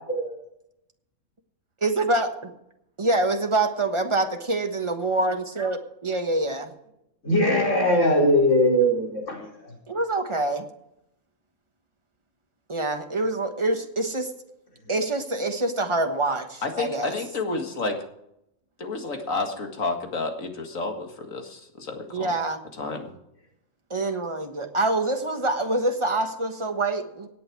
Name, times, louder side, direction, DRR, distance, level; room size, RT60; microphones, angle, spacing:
voice 1, 1.8-2.5 3.0-6.7 9.9-10.6 12.7-14.3 14.9-17.1 22.1-22.6 23.9-27.3, right 2 dB, 25° right, 5 dB, 1.4 m, -26 dB
voice 2, 7.2-9.7, equal, 70° left, -3 dB, 4.9 m, -21 dB
voice 3, 16.6-18.0 18.8-22.4 22.8-23.1, left 3 dB, 90° left, 4 dB, 2.3 m, -30 dB
17.5 x 8.6 x 4.7 m, 0.81 s
omnidirectional pair, 1.3 m